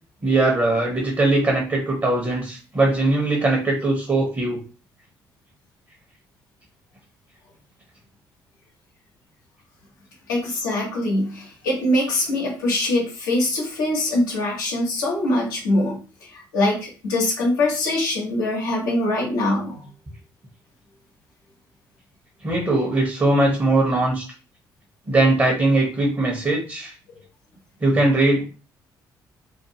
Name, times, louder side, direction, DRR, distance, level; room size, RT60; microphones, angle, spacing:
voice 1, 0.2-4.6 22.4-24.2 25.1-26.9 27.8-28.4, right 2 dB, 25° right, -1 dB, 0.9 m, -20 dB
voice 2, 10.3-19.8, left 1 dB, 70° left, -3 dB, 0.9 m, -23 dB
2.5 x 2.4 x 2.8 m, 0.34 s
figure-of-eight pair, 45°, 11 cm